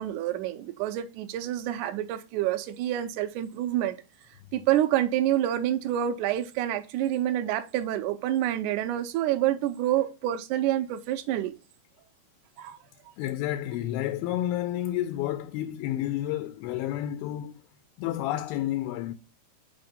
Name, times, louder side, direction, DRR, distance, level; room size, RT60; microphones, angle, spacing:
voice 1, 0.0-4.0 4.5-11.5 12.6-12.8, right 12 dB, 80° right, 1.8 m, -27 dB
voice 2, 13.2-17.5 18.0-19.1, left 13 dB, 85° left, 2.5 m, -30 dB
5.7 x 4.3 x 5.2 m
omnidirectional pair, 4.3 m